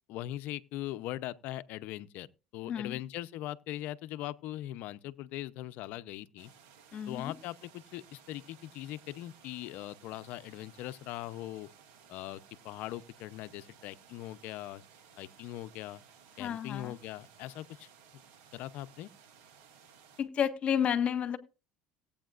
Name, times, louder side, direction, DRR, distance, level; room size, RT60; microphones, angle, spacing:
voice 1, 0.1-2.3 2.5-6.5 7.1-11.7 12.1-14.8 15.2-16.0 16.4-17.9 18.5-19.1, left 14 dB, 65° left, 0.7 m, -41 dB
voice 2, 2.7-3.0 6.9-7.3 16.4-17.0 20.2-21.4, left 8 dB, 40° left, 1.5 m, -31 dB
sound 1, 6.4-20.2, right 7 dB, 75° right, 2.9 m, -59 dB
18.0 x 8.6 x 2.5 m
supercardioid pair, 110°, 3 cm